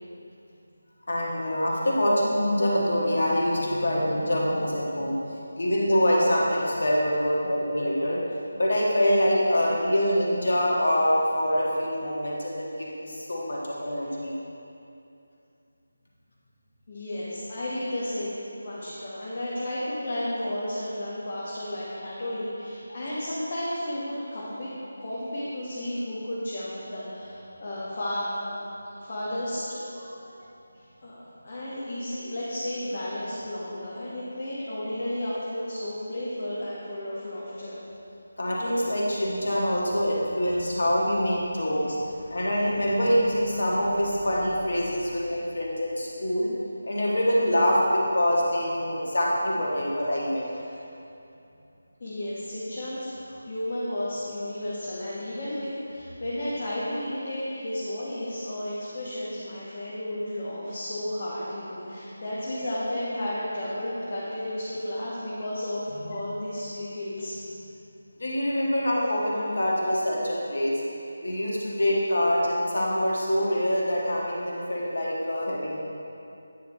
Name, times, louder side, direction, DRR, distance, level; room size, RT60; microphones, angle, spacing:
voice 1, 1.1-5.2 5.6-8.2 8.6-14.3 30.0-30.1 38.4-46.5 46.8-50.5 66.0-66.1 68.2-70.8 71.2-75.8, equal, 65° left, -4 dB, 1.5 m, -25 dB
voice 2, 16.9-24.7 25.0-28.6 28.9-29.8 31.0-37.8 50.6-50.8 52.0-67.4, left 1 dB, 40° left, -8 dB, 1.3 m, -33 dB
9.2 x 5.6 x 3.0 m, 2.7 s
figure-of-eight pair, 160°, 0 cm